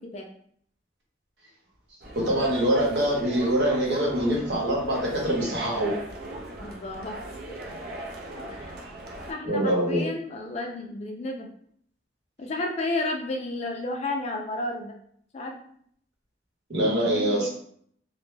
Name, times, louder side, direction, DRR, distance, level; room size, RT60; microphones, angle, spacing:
sound 1, 2.0-9.3, right 1 dB, 60° right, 0.5 m, -39 dB
voice 1, 2.1-5.9 9.4-10.0 16.7-17.5, right 1 dB, 75° right, -3 dB, 0.9 m, -24 dB
voice 2, 6.6-7.2 8.6-8.8 9.3-11.5 12.4-14.9 15.3-15.6 16.8-17.5, left 2 dB, 40° left, 2 dB, 0.3 m, -32 dB
2.1 x 2.0 x 3.1 m, 0.62 s
head